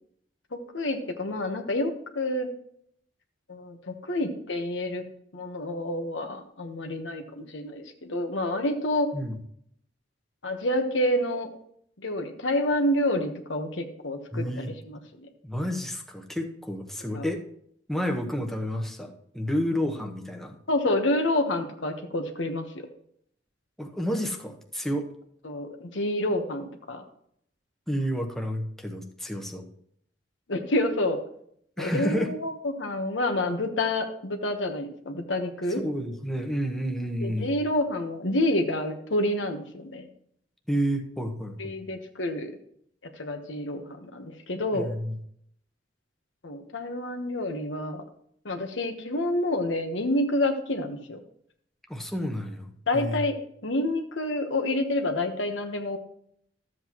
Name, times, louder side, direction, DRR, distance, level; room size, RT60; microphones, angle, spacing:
voice 1, 0.5-2.5 3.5-5.0 5.3-9.1 10.4-11.5 12.0-15.0 17.1-17.2 20.7-22.6 25.4-27.0 30.5-31.2 31.8-35.8 37.2-40.1 41.6-42.5 43.2-44.9 46.4-48.0 48.4-51.2 52.9-53.4 53.6-56.0, left 1 dB, 85° left, 5 dB, 1.2 m, -28 dB
voice 2, 14.3-14.7 15.4-17.4 17.9-20.6 23.8-25.1 27.9-29.7 31.8-32.3 35.7-37.5 40.7-41.7 44.7-45.1 51.9-53.2, equal, ahead, 2 dB, 0.9 m, -30 dB
13.0 x 7.8 x 3.0 m, 0.68 s
head